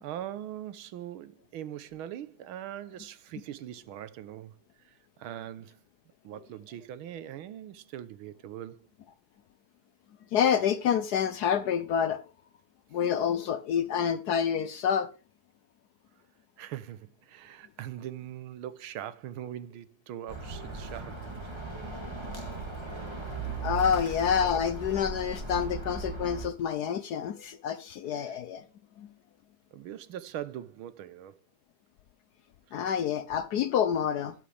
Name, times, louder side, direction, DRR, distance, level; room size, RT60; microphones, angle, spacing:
voice 1, 0.0-4.6 4.8-5.8 6.2-8.9 16.6-21.2 28.1-28.4 29.7-31.3 32.7-32.9, right 11 dB, 90° right, 1.7 m, -41 dB
voice 2, 10.3-12.2 12.9-15.1 23.6-28.6 29.0-29.1 32.7-34.3, left 8 dB, 70° left, 1.0 m, -28 dB
Bird, 20.3-26.4, right 4 dB, 15° right, 2.8 m, -37 dB
12.5 x 9.9 x 3.4 m
omnidirectional pair, 2.2 m